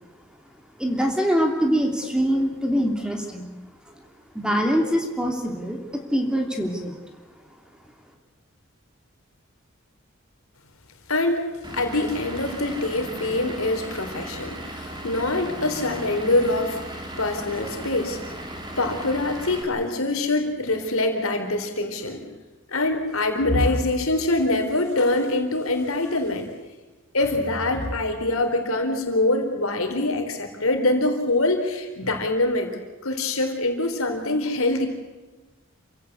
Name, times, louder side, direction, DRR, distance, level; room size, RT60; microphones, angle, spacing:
voice 1, 0.8-3.5 4.3-5.8 6.1-6.9, equal, 5° right, 2 dB, 3.0 m, -23 dB
voice 2, 11.1-11.5 11.7-18.3 18.8-22.2 22.7-26.5 27.1-32.7 33.0-34.9, left 2 dB, 80° left, 5 dB, 3.8 m, -24 dB
Vehicle / Engine, 11.6-19.6, right 1 dB, 20° right, 3.3 m, -36 dB
28.0 x 16.0 x 8.3 m, 1.2 s
head